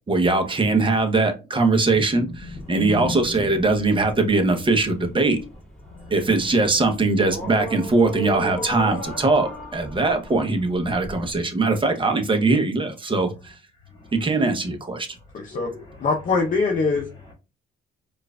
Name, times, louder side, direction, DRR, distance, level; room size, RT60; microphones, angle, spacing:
voice 1, 0.1-5.4 6.1-13.5 14.1-15.1, right 3 dB, 25° right, 0.8 m, -21 dB
sound 1, 2.3-11.4, right 1 dB, 5° left, 1.9 m, -37 dB
voice 2, 2.4-3.2 5.8-6.5 9.9-10.2 13.8-14.4 15.3-16.1 16.9-17.3, left 4 dB, 25° left, 2.0 m, -38 dB
voice 3, 15.3-15.7 16.0-17.1, left 4 dB, 40° left, 0.7 m, -22 dB
4.5 x 2.5 x 2.3 m
cardioid pair, 90°, 20 cm